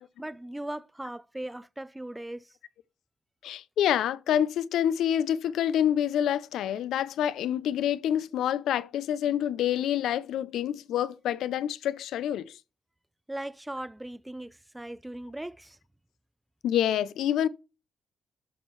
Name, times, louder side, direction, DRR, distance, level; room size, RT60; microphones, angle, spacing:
voice 1, 0.2-2.5 13.3-15.8, right 1 dB, 5° right, 0.3 m, -38 dB
voice 2, 3.4-12.6 16.6-17.5, left 10 dB, 90° left, 0.5 m, -27 dB
12.5 x 4.4 x 3.1 m
cardioid pair, 135°, 0 cm